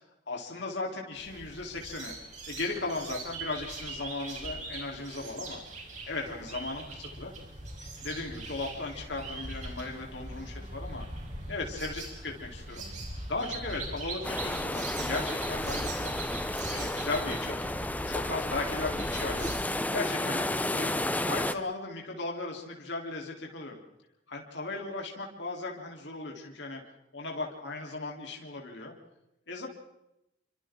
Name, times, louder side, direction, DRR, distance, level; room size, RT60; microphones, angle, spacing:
voice 1, 0.3-2.1 2.5-5.6 6.1-7.3 8.0-11.1 11.5-12.9 13.3-16.1 16.7-17.7 18.1-19.5 19.9-21.0 21.2-23.8 24.3-26.8 27.1-28.9 29.5-29.7, left 3 dB, 70° left, 0 dB, 3.9 m, -36 dB
sound 1, 1.1-19.5, right 2 dB, 40° right, 5.3 m, -41 dB
sound 2, 14.2-21.5, left 1 dB, 10° left, 0.8 m, -32 dB
29.0 x 25.0 x 3.9 m, 0.87 s
head